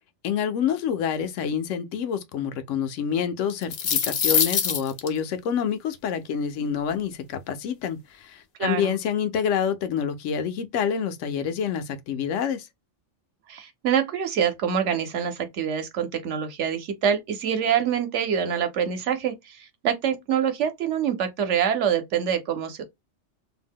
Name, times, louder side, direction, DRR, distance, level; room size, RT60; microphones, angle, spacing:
voice 1, 0.2-12.7, left 8 dB, 80° left, 0.9 m, -27 dB
sound 1, 3.5-5.1, left 6 dB, 65° left, 0.4 m, -23 dB
voice 2, 8.6-8.9 13.5-22.8, right 8 dB, 75° right, 1.0 m, -25 dB
2.7 x 2.1 x 3.5 m
omnidirectional pair, 1.3 m